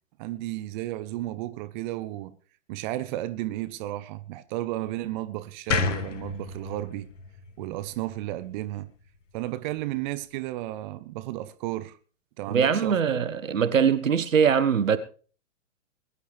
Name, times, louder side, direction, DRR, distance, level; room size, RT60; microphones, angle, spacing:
voice 1, 0.2-2.3 2.7-7.1 7.6-8.9 9.3-12.0 12.4-13.2, right 16 dB, 35° right, 0.8 m, -33 dB
sound 1, 5.7-8.9, left 5 dB, 70° left, 1.8 m, -31 dB
voice 2, 12.5-15.0, right 7 dB, 75° right, 1.4 m, -22 dB
21.5 x 11.5 x 3.3 m
figure-of-eight pair, 115°, 39 cm